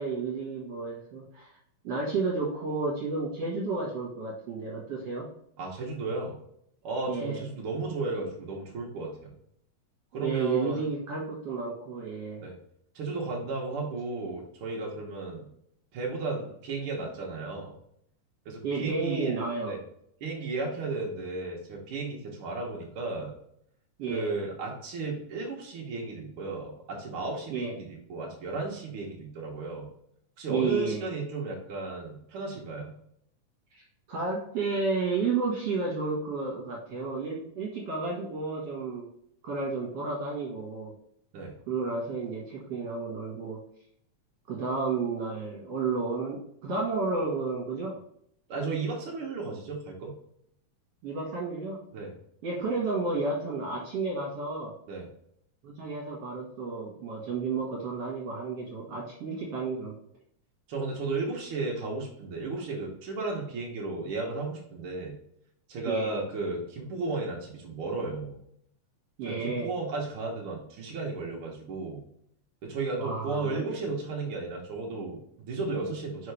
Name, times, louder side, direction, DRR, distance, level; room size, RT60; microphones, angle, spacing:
voice 1, 0.0-1.5 1.8-5.3 7.1-7.4 10.2-12.4 18.6-19.8 24.0-24.3 27.5-27.7 30.5-31.0 33.7-33.8 34.1-39.1 39.4-40.9 41.7-43.6 44.5-48.0 51.0-51.8 52.4-54.7 55.6-59.9 65.8-66.1 69.2-69.7 73.0-73.8, right 4 dB, 55° right, -5 dB, 2.2 m, -31 dB
voice 2, 5.6-6.4 6.8-9.3 10.1-10.9 12.4-12.6 12.9-15.5 15.9-17.7 18.4-19.4 19.7-19.8 20.2-23.3 24.1-29.9 30.4-32.9 41.3-41.5 48.5-50.1 51.9-52.1 54.9-55.0 60.7-65.1 65.7-68.4 69.2-72.0 72.6-76.3, right 3 dB, 80° right, -1 dB, 1.2 m, -34 dB
5.7 x 5.0 x 3.3 m, 0.70 s
omnidirectional pair, 4.0 m